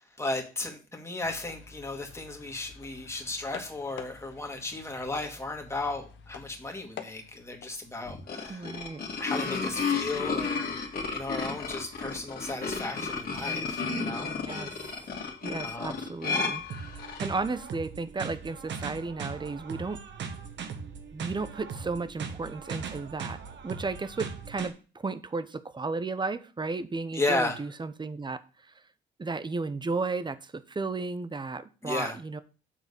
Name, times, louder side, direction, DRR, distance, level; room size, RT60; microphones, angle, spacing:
voice 1, 0.2-8.7 9.2-10.7 11.1-14.3 15.6-16.0 27.1-27.6 31.8-32.2, left 2 dB, 15° left, 2 dB, 2.1 m, -34 dB
sound 1, 1.2-7.7, left 7 dB, 65° left, 1.2 m, -48 dB
sound 2, 8.1-17.4, left 4 dB, 50° left, 2.1 m, -33 dB
voice 2, 8.5-9.0 14.5-15.1 15.4-16.6 16.9-20.0 21.1-23.4 23.6-28.4 29.2-32.4, right 3 dB, 25° right, 13 dB, 0.8 m, -34 dB
sound 3, 16.7-24.7, right 6 dB, 65° right, 1.3 m, -39 dB
7.5 x 3.9 x 6.7 m, 0.35 s
cardioid pair, 90°, 20 cm